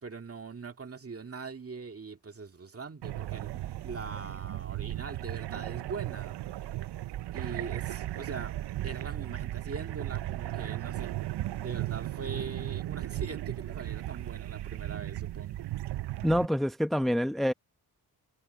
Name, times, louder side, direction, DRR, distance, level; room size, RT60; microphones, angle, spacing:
voice 1, 0.0-6.4 7.3-8.5 8.8-11.1 11.6-15.6, right 4 dB, 35° right, 2.0 m, -42 dB
sound 1, 3.0-16.5, right 15 dB, 85° right, 0.6 m, -36 dB
voice 2, 16.2-17.5, equal, ahead, 0.8 m, -26 dB
cardioid pair, 90°, 39 cm